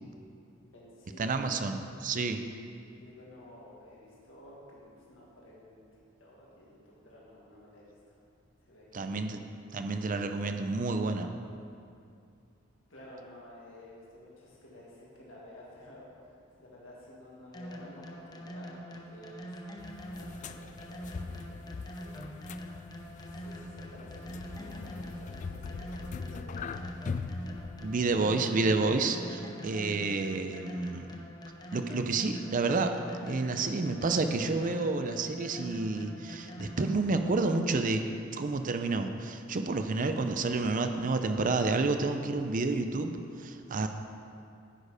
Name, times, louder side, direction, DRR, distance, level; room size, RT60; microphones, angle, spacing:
voice 1, 0.6-1.6 3.0-5.8 6.2-8.0 8.6-9.2 12.9-16.3 16.6-19.6 20.1-22.3 23.2-26.7, left 1 dB, 75° left, -5 dB, 1.9 m, -52 dB
voice 2, 1.2-2.4 8.9-9.4 9.7-11.3 27.8-31.2 31.7-32.9 33.2-38.0 38.3-43.9, right 3 dB, 45° right, 7 dB, 0.5 m, -30 dB
sound 1, 17.5-37.2, equal, 20° left, 0.7 m, -44 dB
sound 2, 19.8-28.3, left 4 dB, 40° left, 0.3 m, -41 dB
9.9 x 6.6 x 4.9 m, 2.4 s
head